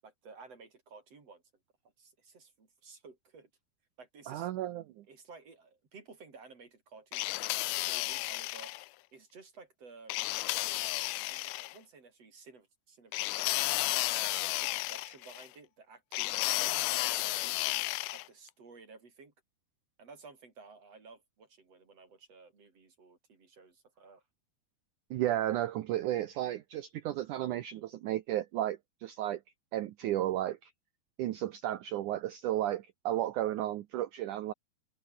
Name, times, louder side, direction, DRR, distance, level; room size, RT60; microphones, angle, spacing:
voice 1, 0.0-1.4 2.0-3.5 4.0-4.5 5.1-8.8 9.1-10.3 11.3-14.0 14.4-17.8 18.1-19.3 20.0-24.2, right 4 dB, 40° right, 5.1 m, -55 dB
voice 2, 4.3-5.0 25.1-29.4 29.7-30.7 31.2-34.5, right 13 dB, 85° right, 1.7 m, -33 dB
sound 1, 7.1-8.8 10.1-11.7 13.1-15.5 16.1-18.3, left 20 dB, 80° left, 2.3 m, -32 dB
open air
omnidirectional pair, 4.7 m